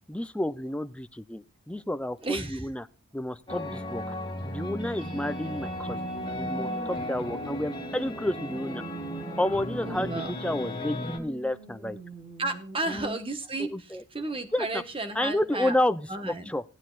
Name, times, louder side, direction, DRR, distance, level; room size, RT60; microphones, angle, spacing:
voice 1, 0.1-2.8 3.1-4.1 4.4-6.0 6.3-8.8 9.4-12.0 12.9-13.2 13.6-14.0 14.5-14.8 15.2-16.6, left 1 dB, 5° left, 12 dB, 0.5 m, -30 dB
voice 2, 2.2-2.7 9.8-10.4 12.4-15.8 16.1-16.5, right 2 dB, 25° right, 8 dB, 1.5 m, -33 dB
sound 1, 3.5-11.2, equal, 20° left, 2.3 m, -35 dB
sound 2, 4.5-13.0, equal, 45° right, 6.7 m, -44 dB
18.0 x 9.6 x 2.5 m, 0.31 s
head